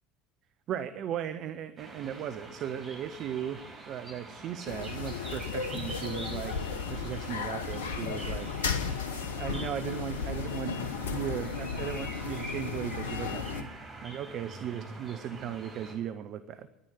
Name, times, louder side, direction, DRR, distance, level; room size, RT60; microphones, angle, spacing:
voice 1, 0.7-6.6 6.9-8.5 9.4-10.8 11.1-13.7 14.0-16.7, right 9 dB, 45° right, 10 dB, 0.6 m, -37 dB
sound 1, 1.8-15.9, right 2 dB, 25° right, 5.5 m, -45 dB
sound 2, 4.7-13.6, left 5 dB, 70° left, 0.9 m, -34 dB
10.5 x 10.5 x 9.3 m, 1.0 s
figure-of-eight pair, 65°, 0 cm